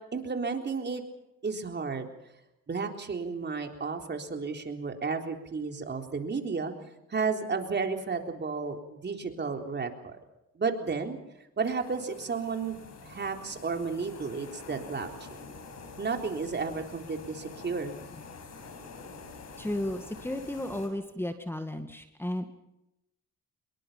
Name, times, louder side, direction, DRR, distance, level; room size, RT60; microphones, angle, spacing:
voice 1, 0.1-1.0 1.4-2.1 2.7-10.2 10.6-11.2 11.6-15.5 16.0-18.0, right 4 dB, 35° right, 4 dB, 3.8 m, -33 dB
sound 1, 11.6-20.9, left 4 dB, 60° left, 6.7 m, -47 dB
voice 2, 19.6-22.5, left 1 dB, 10° left, 7 dB, 2.0 m, -34 dB
25.5 x 22.5 x 5.8 m, 0.89 s
cardioid pair, 90°, 30 cm